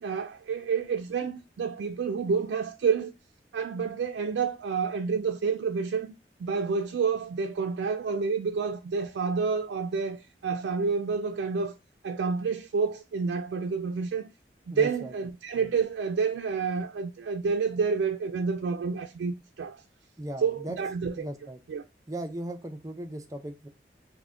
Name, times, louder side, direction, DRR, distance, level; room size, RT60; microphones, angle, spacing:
voice 1, 0.0-3.1 3.5-6.1 6.4-11.7 12.0-14.3 14.7-19.8 20.4-21.3 21.7-21.8, right 5 dB, 85° right, 0.3 m, -29 dB
voice 2, 14.7-15.1 20.2-20.8 21.1-21.6 22.1-23.7, right 1 dB, 20° right, 0.4 m, -37 dB
3.4 x 2.1 x 3.6 m
head